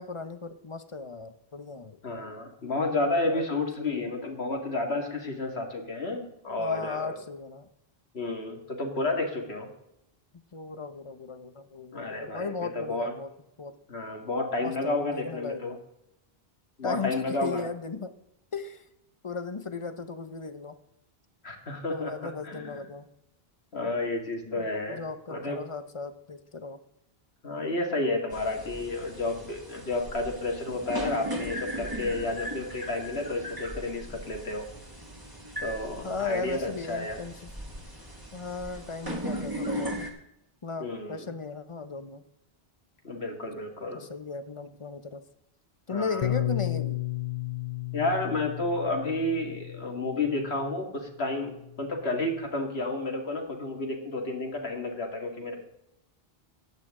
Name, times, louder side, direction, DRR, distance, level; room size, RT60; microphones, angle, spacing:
voice 1, 0.0-2.0 3.3-3.4 3.8-4.1 6.6-7.7 10.5-13.3 13.6-13.8 14.6-15.8 16.8-18.1 18.5-18.9 19.2-20.8 21.9-23.1 24.5-26.8 36.0-37.4 38.3-40.0 40.6-42.2 43.9-45.2 45.9-47.0, left 4 dB, 35° left, 11 dB, 0.8 m, -36 dB
voice 2, 2.0-7.2 8.1-9.7 11.9-13.1 13.9-15.7 16.8-17.6 21.4-22.8 23.7-25.0 25.3-25.6 27.4-34.7 35.6-37.2 40.8-41.2 43.0-44.1 45.9-46.3 47.9-55.6, left 2 dB, 85° left, 2 dB, 2.4 m, -31 dB
sound 1, 28.3-40.1, equal, 20° right, 2.0 m, -38 dB
Bass guitar, 46.2-50.7 51.5-52.5, left 16 dB, 50° left, 0.4 m, -34 dB
14.5 x 10.0 x 3.7 m, 0.82 s
omnidirectional pair, 1.0 m